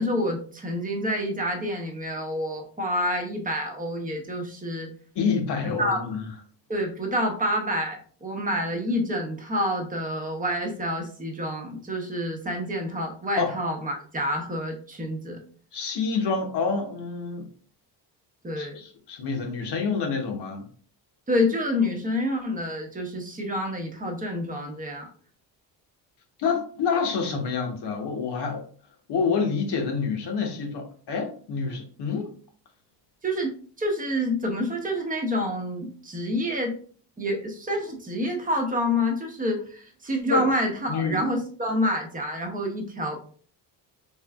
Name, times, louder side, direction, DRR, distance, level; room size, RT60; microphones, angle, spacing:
voice 1, 0.0-4.9 5.8-6.0 6.7-15.4 18.4-18.8 21.3-25.1 33.2-36.7 37.2-43.2, left 1 dB, 20° right, 0.9 m, -28 dB
voice 2, 5.1-6.3 13.4-13.5 15.7-17.5 18.6-20.7 26.4-28.6 29.1-32.3 40.3-40.4 40.9-41.2, left 5 dB, 60° left, 1.1 m, -27 dB
4.4 x 3.1 x 2.4 m
cardioid pair, 115°, 45 cm